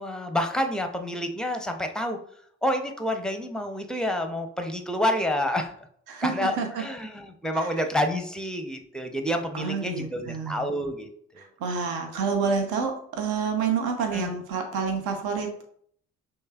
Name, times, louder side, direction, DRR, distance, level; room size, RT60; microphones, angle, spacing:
voice 1, 0.0-2.2 2.6-5.7 6.2-11.1 11.3-11.5 14.1-14.3, equal, ahead, 5 dB, 0.6 m, -28 dB
voice 2, 6.1-6.8 9.5-10.6 11.4-15.5, right 5 dB, 65° right, 4 dB, 0.9 m, -28 dB
5.4 x 3.2 x 2.4 m, 0.64 s
figure-of-eight pair, 45°, 40 cm